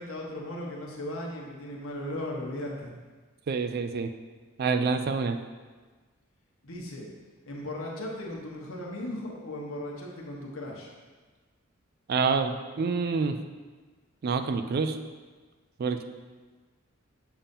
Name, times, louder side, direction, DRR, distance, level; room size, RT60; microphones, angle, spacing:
voice 1, 0.0-2.9 6.6-7.1 7.4-10.9, left 1 dB, 70° left, -2 dB, 1.1 m, -37 dB
voice 2, 3.5-4.1 4.6-5.4 12.1-13.4 14.2-15.0 15.8-16.0, right 5 dB, 45° right, 9 dB, 0.3 m, -27 dB
7.0 x 2.7 x 5.3 m, 1.4 s
head